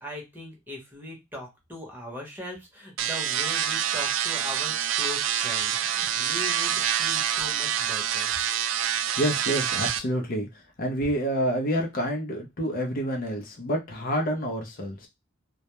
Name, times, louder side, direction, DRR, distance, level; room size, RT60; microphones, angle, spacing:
voice 1, 0.0-8.3, left 1 dB, 10° right, -1 dB, 0.8 m, -40 dB
sound 1, 3.0-10.0, right 10 dB, 90° right, 0.3 m, -26 dB
voice 2, 9.2-10.5 10.8-15.1, equal, 50° left, 2 dB, 0.6 m, -28 dB
2.2 x 2.1 x 2.9 m, 0.22 s
head